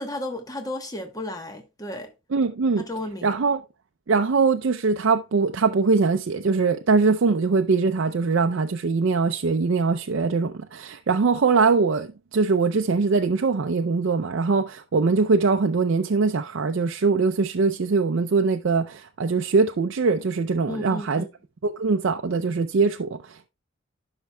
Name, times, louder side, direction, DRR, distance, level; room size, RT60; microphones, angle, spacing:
voice 1, 0.0-2.1 2.9-3.4 20.7-21.3, left 1 dB, 15° left, 1.0 m, -33 dB
voice 2, 2.3-2.8 3.2-3.6 4.1-21.2 21.6-23.5, right 4 dB, 60° right, 0.4 m, -22 dB
12.5 x 5.8 x 2.2 m
head